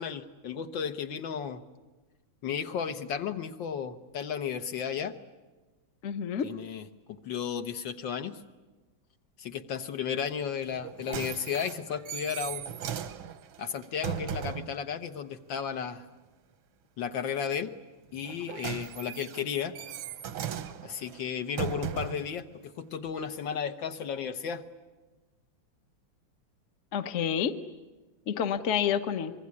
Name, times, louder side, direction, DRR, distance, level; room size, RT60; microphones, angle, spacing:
voice 1, 0.0-1.6 2.4-5.2 6.4-8.4 9.4-12.7 13.6-16.0 17.0-17.7 18.1-19.7 20.8-24.6, left 7 dB, 70° left, 7 dB, 1.8 m, -34 dB
voice 2, 6.0-6.5 26.9-27.5 28.3-29.3, left 8 dB, 45° left, 9 dB, 1.1 m, -28 dB
sound 1, 10.7-14.8 18.1-22.3 23.1-23.2, right 8 dB, 85° right, 1.9 m, -37 dB
25.0 x 22.5 x 9.7 m, 1.2 s
omnidirectional pair, 2.2 m